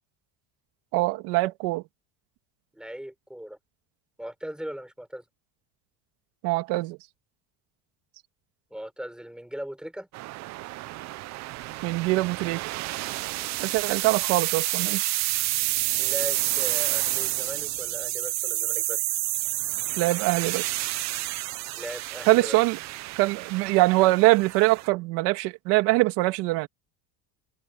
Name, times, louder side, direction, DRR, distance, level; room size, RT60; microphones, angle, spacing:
voice 1, 0.9-1.8 6.4-7.0 11.8-12.6 13.6-15.1 20.0-20.7 22.3-22.8 23.2-26.7, right 21 dB, 80° right, 2.1 m, -23 dB
voice 2, 2.7-3.6 4.2-5.2 8.7-10.1 16.0-19.0 21.7-22.6, equal, ahead, 4.7 m, -38 dB
sound 1, 10.1-24.9, right 18 dB, 45° right, 0.6 m, -30 dB
cardioid pair, 175°, 40 cm